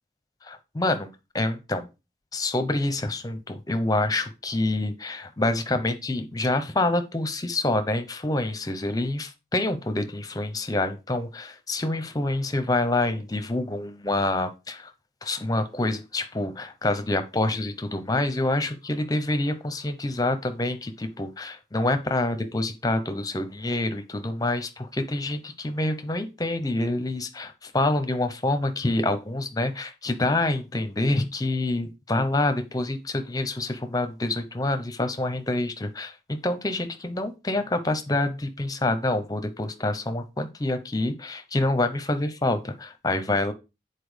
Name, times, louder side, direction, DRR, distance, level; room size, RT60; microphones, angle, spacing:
voice 1, 0.4-1.9 2.3-14.9 15.2-43.5, left 2 dB, 20° left, 9 dB, 0.9 m, -27 dB
8.5 x 4.4 x 5.1 m, 0.27 s
head